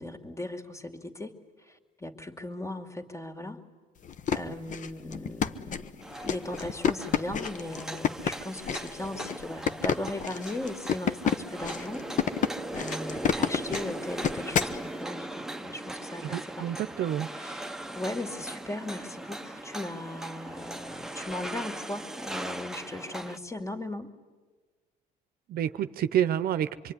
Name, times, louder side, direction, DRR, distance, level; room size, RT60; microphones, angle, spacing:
voice 1, 0.0-3.6 4.3-12.4 12.7-16.8 17.4-24.1, left 1 dB, 15° left, 6 dB, 2.6 m, -38 dB
sound 1, 4.0-14.8, left 8 dB, 50° left, 1.1 m, -30 dB
sound 2, 6.0-23.4, right 1 dB, 5° right, 1.0 m, -39 dB
voice 2, 16.2-17.3 25.5-26.9, right 10 dB, 60° right, 12 dB, 0.8 m, -29 dB
25.5 x 23.5 x 9.9 m, 1.3 s
cardioid pair, 110°, 17 cm